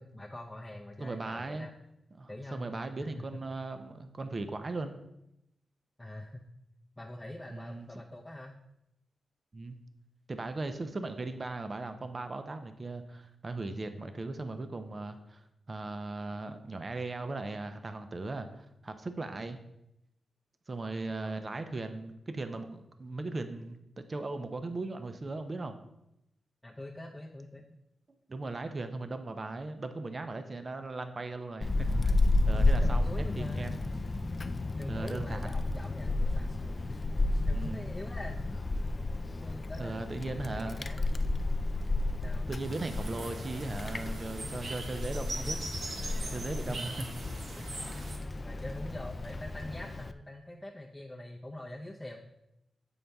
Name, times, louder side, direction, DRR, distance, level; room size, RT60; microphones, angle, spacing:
voice 1, 0.0-1.7 2.3-2.7 3.0-3.4 6.0-6.4 7.0-8.6 19.2-19.5 21.2-21.5 26.6-27.6 32.5-33.7 34.8-36.5 36.8-37.1 37.4-38.4 39.3-41.6 42.2-42.5 46.7-46.8 47.6-47.7 48.4-52.2, left 1 dB, 15° left, -3 dB, 0.7 m, -44 dB
voice 2, 1.0-1.7 2.1-5.0 7.5-7.9 9.5-9.8 10.3-19.6 20.7-23.8 24.1-25.8 28.3-32.1 32.5-33.9 34.9-35.6 37.5-37.9 39.8-40.8 42.5-45.7 46.3-47.1, right 2 dB, 40° right, 8 dB, 0.6 m, -38 dB
Wind, 31.6-50.1, left 2 dB, 35° left, 0.3 m, -32 dB
sound 1, 42.5-48.2, right 2 dB, 65° right, 1.1 m, -42 dB
7.5 x 5.5 x 3.4 m, 0.84 s
cardioid pair, 85°, 0 cm